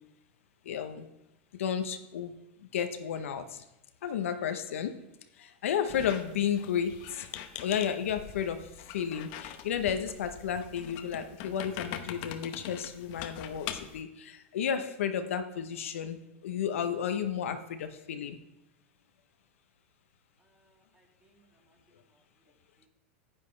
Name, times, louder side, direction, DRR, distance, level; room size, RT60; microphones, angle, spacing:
voice 1, 0.7-1.0 1.6-2.3 2.7-3.4 4.0-4.9 5.6-7.0 7.6-8.6 8.9-13.7 13.9-14.1 14.5-16.2 16.4-18.4, left 8 dB, 85° left, 7 dB, 0.9 m, -32 dB
Squeak, 5.9-14.0, left 10 dB, 55° left, 0.9 m, -43 dB
voice 2, 20.4-22.2 22.8-22.9, right 2 dB, 15° right, -2 dB, 2.8 m, -69 dB
9.8 x 9.2 x 3.3 m, 0.92 s
hypercardioid pair, 125°, 7 cm